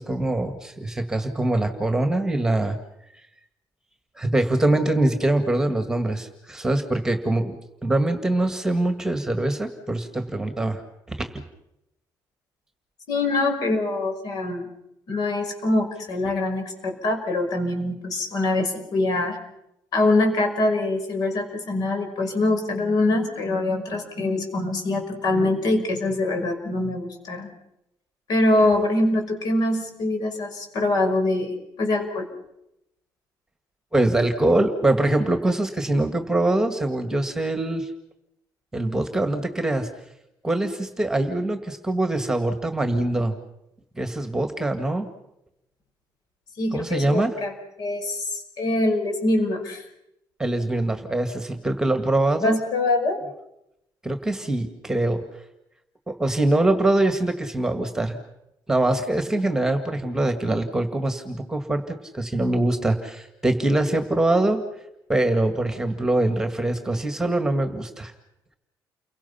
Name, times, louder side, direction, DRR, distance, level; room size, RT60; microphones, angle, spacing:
voice 1, 0.0-2.8 4.2-10.8 11.1-11.3 33.9-37.9 38.7-39.9 40.4-43.4 44.0-45.1 46.7-47.4 50.4-52.6 54.0-55.2 56.1-58.2 58.7-64.6 65.1-68.1, right 2 dB, 5° right, 7 dB, 2.0 m, -23 dB
voice 2, 13.1-14.7 15.1-19.4 19.9-27.5 28.3-32.3 46.6-47.5 47.8-49.8 52.4-53.2, left 2 dB, 60° left, 5 dB, 5.8 m, -24 dB
30.0 x 23.0 x 5.8 m, 0.84 s
cardioid pair, 155°, 7 cm